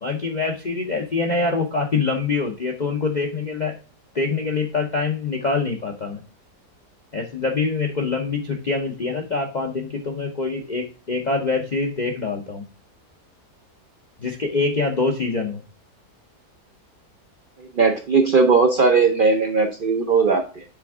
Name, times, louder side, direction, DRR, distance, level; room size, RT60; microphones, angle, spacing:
voice 1, 0.0-3.7 4.1-6.2 7.1-12.6 14.2-15.6, left 4 dB, 55° left, 1 dB, 0.5 m, -25 dB
voice 2, 17.8-20.6, right 4 dB, 70° right, 4 dB, 0.5 m, -18 dB
6.8 x 3.4 x 4.7 m, 0.34 s
omnidirectional pair, 1.8 m